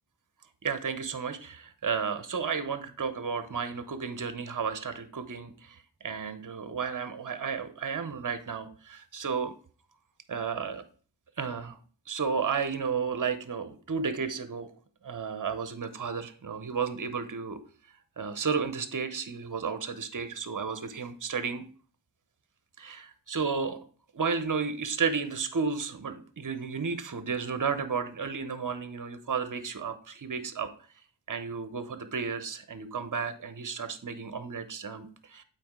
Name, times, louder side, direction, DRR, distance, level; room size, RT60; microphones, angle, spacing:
voice 1, 0.6-9.5 10.3-10.8 11.4-11.8 12.1-14.7 15.0-17.6 18.2-21.6 22.8-23.8 24.1-30.7 31.3-35.4, right 5 dB, 45° right, 11 dB, 0.8 m, -33 dB
7.6 x 4.7 x 3.7 m, 0.42 s
wide cardioid pair, 50°, 45 cm